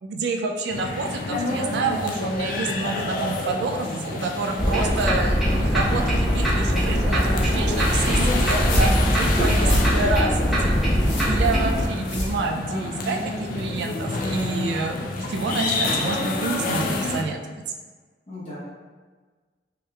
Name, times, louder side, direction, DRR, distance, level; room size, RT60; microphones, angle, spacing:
voice 1, 0.0-10.8 11.2-14.9 15.3-17.4, right 3 dB, 70° right, 3 dB, 0.3 m, -28 dB
sound 1, 0.7-17.2, left 2 dB, 50° left, 0.3 m, -28 dB
sound 2, 4.6-11.9, equal, ahead, 0.7 m, -22 dB
sound 3, 8.7-13.0, left 1 dB, 80° left, 0.8 m, -27 dB
voice 2, 11.5-11.9 18.3-18.6, left 1 dB, 35° left, -9 dB, 1.1 m, -35 dB
3.2 x 2.8 x 2.3 m, 1.4 s
head